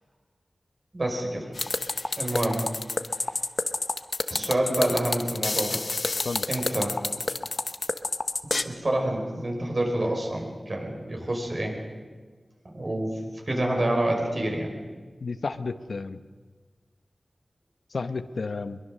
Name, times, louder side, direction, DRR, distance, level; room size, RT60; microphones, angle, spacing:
voice 1, 0.9-1.5 2.2-2.7 4.3-5.8 6.5-7.0 8.6-11.8 12.7-14.7, right 1 dB, 50° right, 1 dB, 5.3 m, -27 dB
sound 1, 1.6-8.6, left 3 dB, 55° left, 0.9 m, -28 dB
voice 2, 15.2-16.2 17.9-18.8, left 4 dB, 85° left, 10 dB, 0.9 m, -32 dB
22.0 x 22.0 x 6.5 m, 1.4 s
wide cardioid pair, 70°, 0 cm